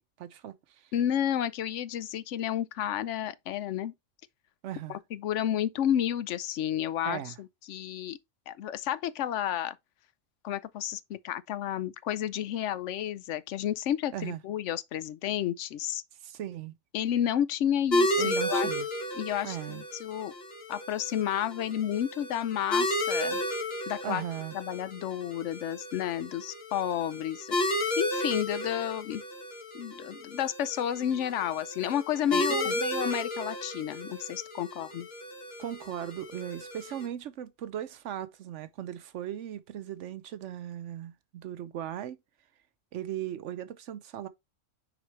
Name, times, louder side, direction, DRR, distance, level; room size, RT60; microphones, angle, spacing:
voice 1, 0.2-0.9 4.6-5.0 7.1-7.3 14.1-14.4 16.2-16.7 18.2-18.9 19.4-19.8 24.0-24.6 32.3-32.8 35.6-42.2 42.9-44.3, right 11 dB, 75° right, 1.0 m, -38 dB
voice 2, 0.9-3.9 4.9-8.2 8.5-9.8 10.4-16.0 16.9-18.7 19.2-20.3 20.7-23.4 23.9-24.2 24.5-27.6 28.0-29.2 29.7-35.1, left 10 dB, 75° left, 0.9 m, -31 dB
sound 1, 17.9-37.1, left 1 dB, 55° left, 1.8 m, -33 dB
6.0 x 5.0 x 3.1 m
omnidirectional pair, 1.3 m